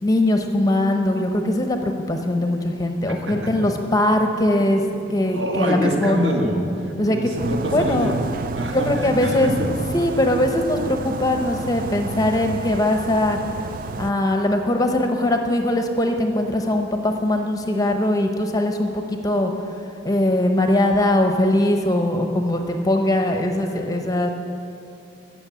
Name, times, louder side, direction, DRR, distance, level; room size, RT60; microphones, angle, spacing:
voice 1, 0.0-4.8 5.1-6.2 7.0-7.3 7.7-8.1 8.7-9.5 9.9-13.4 14.0-19.5 20.0-24.3, left 1 dB, 20° left, 4 dB, 0.8 m, -21 dB
voice 2, 3.3-3.7 5.3-8.2 8.5-9.7, equal, 65° right, 0 dB, 1.7 m, -25 dB
sound 1, 7.4-14.1, right 4 dB, 45° right, 0.3 m, -31 dB
14.5 x 6.3 x 8.4 m, 2.7 s
head